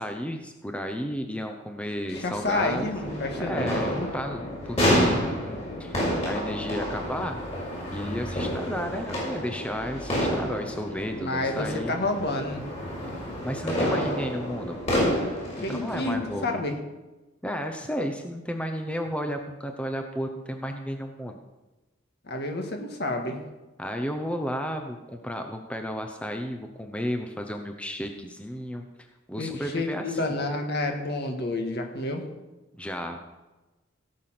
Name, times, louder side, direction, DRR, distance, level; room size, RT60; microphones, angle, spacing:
voice 1, 0.0-2.9 3.4-7.4 7.9-12.0 13.4-14.8 15.6-16.6 17.4-21.4 23.8-30.4 32.7-33.2, equal, 5° left, 5 dB, 0.8 m, -33 dB
voice 2, 2.1-3.7 4.0-4.1 11.1-12.7 15.6-16.8 22.2-23.4 29.4-32.2, left 2 dB, 55° left, 3 dB, 1.9 m, -29 dB
sound 1, 2.1-16.5, equal, 35° left, 5.2 m, -29 dB
17.0 x 6.9 x 5.9 m, 1.1 s
head